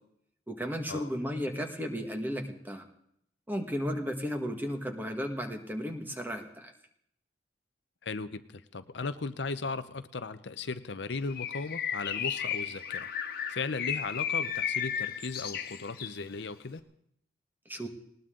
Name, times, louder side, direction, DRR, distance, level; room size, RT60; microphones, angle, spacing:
voice 1, 0.5-2.9 3.5-6.7 17.6-17.9, equal, 10° right, 5 dB, 1.7 m, -34 dB
voice 2, 8.0-13.1 13.5-16.8, left 4 dB, 70° left, 12 dB, 0.7 m, -37 dB
Bird, 11.3-16.2, left 8 dB, 50° left, 1.5 m, -34 dB
20.0 x 19.0 x 3.8 m, 0.72 s
head